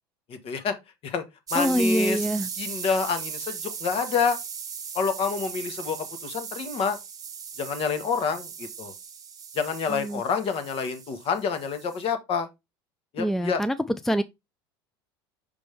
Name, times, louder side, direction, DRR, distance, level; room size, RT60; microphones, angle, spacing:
voice 1, 0.3-0.7 1.0-1.2 1.5-2.2 2.6-4.4 4.9-7.0 7.6-8.9 9.5-12.5 13.1-13.6, left 5 dB, 45° left, 1.4 m, -28 dB
voice 2, 1.5-2.5 9.9-10.2 13.2-13.7 14.1-14.2, equal, ahead, 0.4 m, -25 dB
sound 1, 1.5-12.1, right 6 dB, 30° right, 1.1 m, -37 dB
5.4 x 5.1 x 3.5 m
hypercardioid pair, 80°, 13 cm